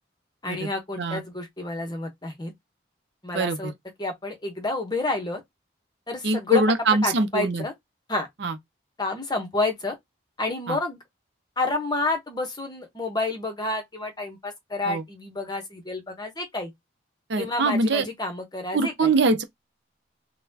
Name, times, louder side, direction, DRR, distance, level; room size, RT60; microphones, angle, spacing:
voice 1, 0.4-2.5 3.2-3.7 4.0-5.4 6.1-6.6 7.0-7.7 8.1-8.3 9.0-10.0 10.4-11.0 11.6-16.7 17.4-19.1, left 2 dB, 20° left, 0.9 m, -29 dB
voice 2, 3.3-3.7 6.2-7.6 8.4-8.6 10.7-10.8 14.9-15.0 17.3-18.1 18.7-19.4, right 3 dB, 65° right, 0.6 m, -23 dB
4.0 x 2.2 x 2.7 m
head